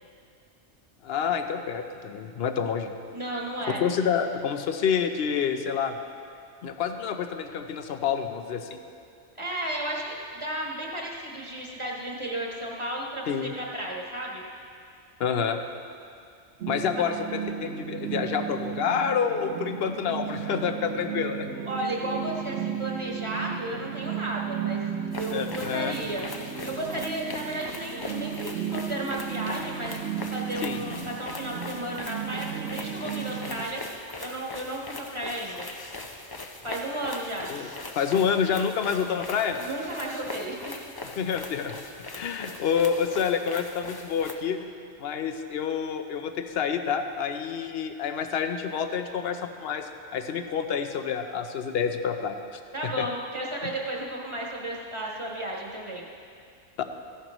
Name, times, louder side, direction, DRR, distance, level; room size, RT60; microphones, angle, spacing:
voice 1, 1.0-2.9 3.8-6.0 6.6-8.8 13.3-13.5 15.2-15.6 16.7-21.5 25.3-26.0 30.6-30.8 37.5-37.7 38.0-39.6 41.2-41.7 42.1-44.6 45.0-52.4 52.8-53.1 53.6-53.7 56.8-56.9, left 7 dB, 60° left, 7 dB, 0.8 m, -28 dB
voice 2, 3.1-3.8 9.4-14.4 16.9-17.0 21.7-24.8 25.2-26.3 26.6-29.9 30.3-33.8 34.2-35.7 36.6-37.5 39.6-40.7 52.7-56.0, right 1 dB, 25° right, -3 dB, 1.3 m, -33 dB
sound 1, 16.6-33.7, right 8 dB, 70° right, 0.9 m, -34 dB
sound 2, 25.1-44.4, left 3 dB, 30° left, 0.4 m, -41 dB
14.5 x 11.0 x 3.1 m, 2.3 s
omnidirectional pair, 1.2 m